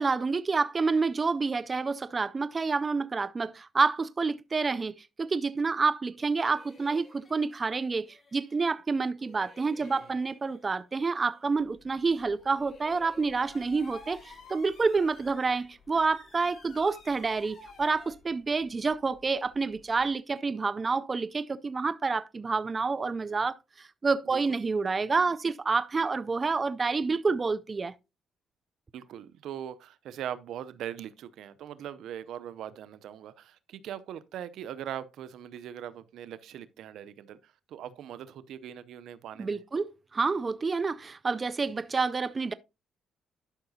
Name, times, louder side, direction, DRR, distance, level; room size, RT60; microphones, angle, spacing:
voice 1, 0.0-27.9 39.4-42.5, right 4 dB, 30° right, 0.4 m, -28 dB
manic laugh, 6.2-8.8 9.1-11.7 12.1-15.9, left 3 dB, 35° left, 2.9 m, -58 dB
sound 1, 11.6-20.1, left 3 dB, 55° left, 3.3 m, -53 dB
voice 2, 28.9-39.6, right 10 dB, 80° right, 0.6 m, -41 dB
11.5 x 5.8 x 2.7 m
cardioid pair, 90°, 0 cm